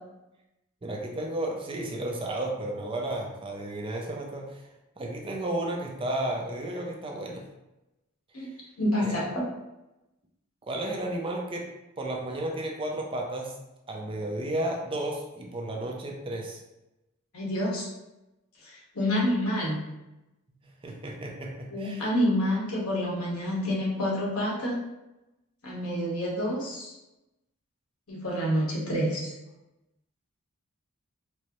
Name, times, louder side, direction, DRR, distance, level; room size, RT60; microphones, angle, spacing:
voice 1, 0.8-4.6 5.0-7.4 9.0-9.2 10.6-11.7 12.0-13.5 13.9-16.6 20.8-22.1, right 1 dB, 25° right, 0 dB, 0.4 m, -33 dB
voice 2, 8.8-9.4 17.3-17.9 18.6-19.8 21.7-24.8 25.6-26.9 28.1-29.3, equal, 80° left, -4 dB, 1.2 m, -28 dB
4.5 x 2.0 x 3.0 m, 0.97 s
head